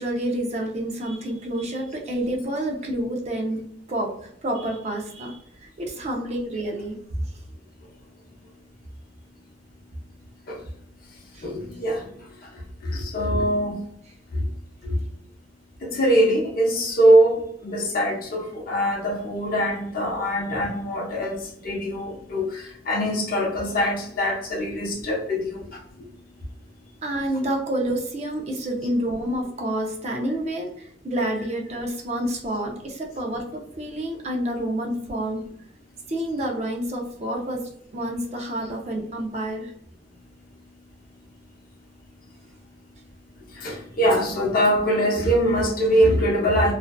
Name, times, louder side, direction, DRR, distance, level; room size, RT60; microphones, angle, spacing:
voice 1, 0.0-7.3 11.3-11.5 27.0-35.5 36.1-39.7, right 1 dB, 35° right, 1 dB, 0.5 m, -29 dB
voice 2, 11.4-12.1 12.8-13.8 14.3-14.4 14.8-15.0 15.8-21.4 21.6-25.7 43.5-46.7, equal, 50° left, -1 dB, 0.7 m, -22 dB
2.5 x 2.3 x 2.2 m, 0.69 s
head